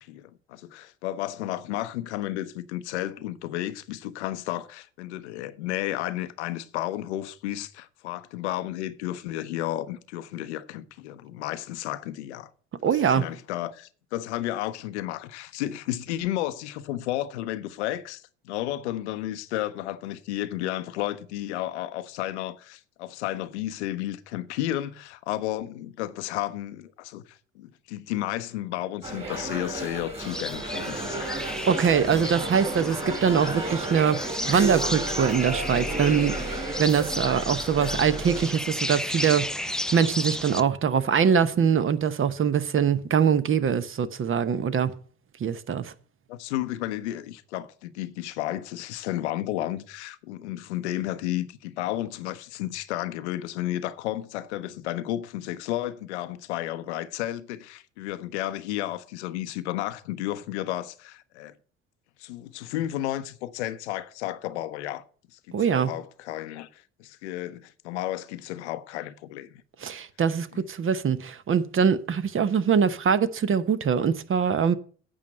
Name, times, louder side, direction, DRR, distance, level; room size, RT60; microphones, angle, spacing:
voice 1, 0.0-12.5 13.0-31.4 46.3-61.5 62.2-65.0 65.3-69.5, left 14 dB, 80° left, 0.8 m, -32 dB
voice 2, 12.8-13.3 31.7-44.9 45.4-45.9 65.5-65.9 69.8-74.7, right 7 dB, 40° right, 0.9 m, -23 dB
sound 1, 29.0-38.5, right 2 dB, 20° right, 3.4 m, -32 dB
sound 2, 30.2-40.6, left 1 dB, ahead, 0.5 m, -34 dB
8.7 x 5.7 x 7.5 m
hypercardioid pair, 60°, 34 cm